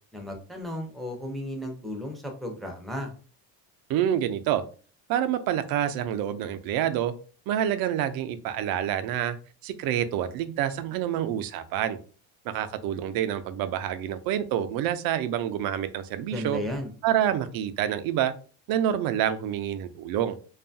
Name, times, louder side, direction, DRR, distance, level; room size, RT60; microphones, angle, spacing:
voice 1, 0.1-3.1 16.3-16.9, left 1 dB, ahead, 2 dB, 0.4 m, -34 dB
voice 2, 3.9-4.6 5.1-7.1 7.5-9.4 9.6-12.0 12.4-16.6 17.0-18.3 18.7-20.4, right 10 dB, 70° right, 10 dB, 0.5 m, -27 dB
2.6 x 2.3 x 2.6 m, 0.39 s
cardioid pair, 130°, 37 cm